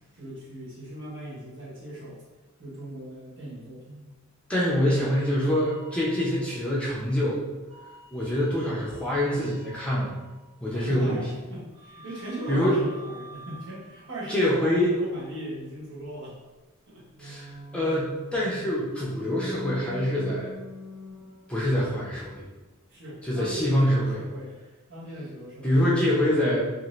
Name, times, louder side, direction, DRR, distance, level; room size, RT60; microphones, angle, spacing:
voice 1, 0.1-2.2 2.6-4.1 10.7-16.4 16.9-17.3 22.9-24.5 24.9-25.9 26.2-26.3, equal, 65° right, -6 dB, 1.0 m, -38 dB
voice 2, 4.5-7.4 8.1-10.1 10.6-11.2 12.5-12.8 14.3-14.9 17.2-20.5 21.5-22.4 23.2-24.2 25.6-26.6, left 1 dB, 5° left, -6 dB, 0.5 m, -25 dB
sound 1, 4.9-6.7 7.7-10.6 11.7-14.5 17.1-22.0 23.6-24.5, equal, 35° right, 0.7 m, -45 dB
2.6 x 2.5 x 3.0 m, 1.2 s
head